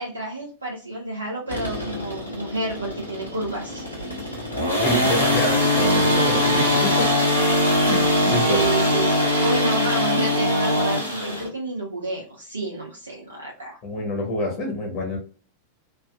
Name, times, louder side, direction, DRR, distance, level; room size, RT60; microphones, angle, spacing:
voice 1, 0.0-3.8 8.4-9.1 9.4-13.8, right 2 dB, 80° right, -3 dB, 0.6 m, -30 dB
sound 1, 1.5-11.5, left 1 dB, 85° left, 1.1 m, -22 dB
voice 2, 4.8-7.1 7.8-8.6 13.8-15.2, left 2 dB, 40° left, 1 dB, 0.9 m, -27 dB
3.2 x 2.5 x 2.2 m, 0.39 s
figure-of-eight pair, 90°, 0 cm